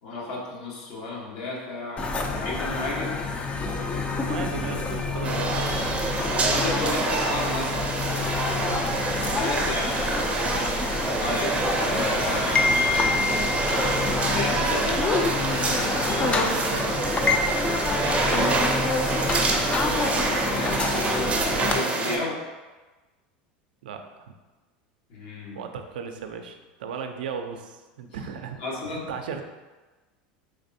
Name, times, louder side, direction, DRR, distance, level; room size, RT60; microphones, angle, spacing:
voice 1, 0.0-3.2 6.4-7.8 9.3-10.0 11.2-11.6 11.8-13.2 14.3-15.0 18.1-18.5 19.9-22.4 25.1-25.6 28.0-28.1 28.6-29.1, left 2 dB, 60° left, -3 dB, 1.1 m, -32 dB
sound 1, 2.0-21.8, left 3 dB, 25° left, 0.4 m, -27 dB
voice 2, 4.2-6.0 8.2-8.3 8.7-9.0 16.1-17.0 23.8-24.3 25.5-28.6 28.8-29.4, right 6 dB, 85° right, 6 dB, 0.4 m, -36 dB
sound 2, 4.9-5.3 5.7-6.1 9.2-10.5 11.2-12.9 13.6-17.4, left 2 dB, 85° left, 0.6 m, -40 dB
sound 3, 5.2-22.2, right 3 dB, 25° right, 0.5 m, -27 dB
3.4 x 3.2 x 2.6 m, 1.2 s
hypercardioid pair, 100°, 5 cm